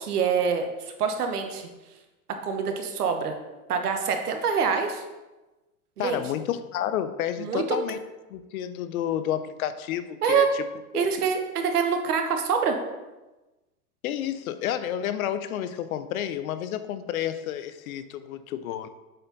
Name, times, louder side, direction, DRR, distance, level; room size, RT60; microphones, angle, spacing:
voice 1, 0.0-1.7 2.3-3.4 3.7-5.0 6.0-6.2 7.4-7.8 10.2-10.5 10.9-12.8, right 6 dB, 90° right, 5 dB, 1.2 m, -25 dB
voice 2, 6.0-8.0 8.3-10.6 10.9-11.1 14.0-18.9, left 10 dB, 70° left, 12 dB, 0.7 m, -30 dB
7.6 x 4.3 x 4.0 m, 1.1 s
hypercardioid pair, 125°, 45 cm